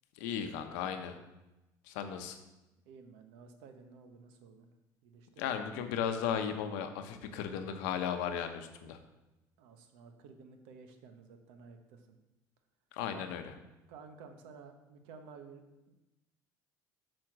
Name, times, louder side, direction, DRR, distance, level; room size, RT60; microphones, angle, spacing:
voice 1, 0.2-1.2 1.9-2.4 5.4-9.0 12.9-13.5, left 8 dB, 80° left, 7 dB, 0.8 m, -36 dB
voice 2, 2.9-4.7 5.0-5.5 9.6-12.2 13.1-13.3 13.9-15.9, right 5 dB, 75° right, 7 dB, 0.9 m, -53 dB
5.9 x 4.4 x 6.3 m, 1.0 s
hypercardioid pair, 70°, 9 cm